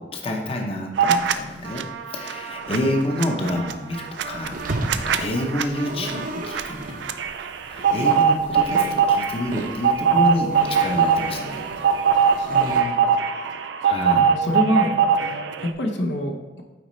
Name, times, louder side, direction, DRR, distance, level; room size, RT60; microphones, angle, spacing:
voice 1, 0.0-4.6 5.2-7.0 7.6-11.6 13.8-14.3, left 1 dB, 35° left, 1 dB, 0.7 m, -28 dB
sound 1, 1.0-1.3 1.7-15.7, right 6 dB, 75° right, 0.4 m, -22 dB
sound 2, 4.3-12.8, right 2 dB, 50° right, 0.7 m, -35 dB
voice 2, 12.2-13.1 14.4-16.6, left 1 dB, 80° left, 2 dB, 0.8 m, -27 dB
9.3 x 4.1 x 3.1 m, 1.2 s
head